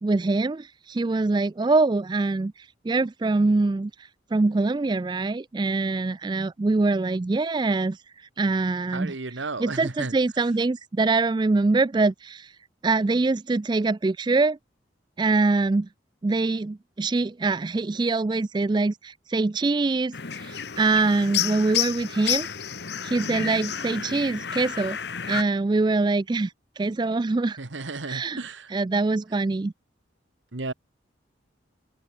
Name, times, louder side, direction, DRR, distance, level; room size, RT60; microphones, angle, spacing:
voice 1, 0.0-12.6 12.8-14.6 15.2-15.9 16.2-22.5 23.0-25.0 25.3-27.6 28.1-28.4 28.7-29.7, right 3 dB, 25° right, 0.3 m, -24 dB
voice 2, 8.9-10.1 27.6-28.7 30.5-30.7, right 3 dB, 75° right, 1.4 m, -33 dB
sound 1, 20.1-25.4, left 9 dB, 60° left, 1.1 m, -30 dB
head